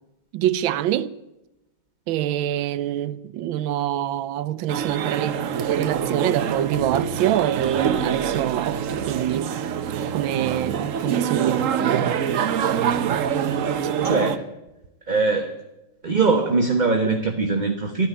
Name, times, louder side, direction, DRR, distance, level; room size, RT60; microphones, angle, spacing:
voice 1, 0.3-1.1 2.1-9.5 10.1-12.2, right 12 dB, 80° right, 1.5 m, -25 dB
sound 1, 4.7-14.4, right 8 dB, 60° right, 0.9 m, -25 dB
voice 2, 14.0-14.4 15.1-15.5 16.0-18.1, right 4 dB, 30° right, 1.0 m, -21 dB
13.5 x 10.0 x 9.3 m
omnidirectional pair, 2.1 m